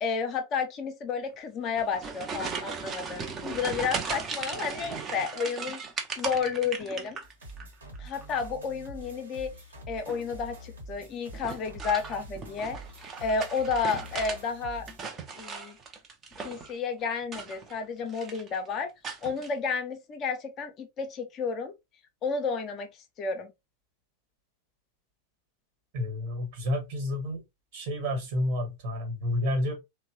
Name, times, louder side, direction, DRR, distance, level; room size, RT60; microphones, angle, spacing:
voice 1, 0.0-5.8 6.2-7.2 8.0-9.5 9.9-12.8 13.2-14.9 15.3-15.8 16.4-18.9 19.2-21.7 22.2-22.9 23.2-23.5, left 5 dB, 35° left, 0.4 m, -31 dB
sound 1, 1.6-7.7 8.0-8.5 9.9-10.3 11.3-14.4 14.7-16.8 17.2-17.8 18.1-18.6 19.0-19.5, right 5 dB, 25° right, 0.5 m, -37 dB
sound 2, 7.2-15.1, right 1 dB, 70° right, 1.0 m, -46 dB
voice 2, 25.9-27.4 27.7-29.7, left 1 dB, 50° right, 1.2 m, -30 dB
2.9 x 2.0 x 2.7 m
figure-of-eight pair, 90°, 0 cm